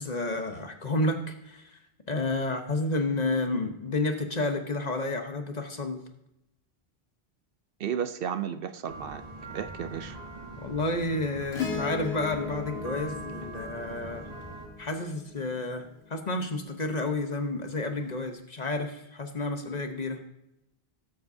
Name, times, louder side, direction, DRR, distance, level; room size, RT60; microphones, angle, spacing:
voice 1, 0.0-1.8 2.1-6.0 10.6-14.3 14.8-20.2, left 2 dB, 45° left, 6 dB, 1.1 m, -30 dB
voice 2, 7.8-9.2 9.5-10.2, right 8 dB, 65° right, 10 dB, 0.8 m, -33 dB
sound 1, 8.9-14.7, right 2 dB, 40° right, 2.2 m, -42 dB
Acoustic guitar / Strum, 11.5-16.1 18.0-18.1, left 5 dB, 80° left, 1.8 m, -37 dB
18.5 x 7.7 x 2.7 m, 0.86 s
omnidirectional pair, 1.0 m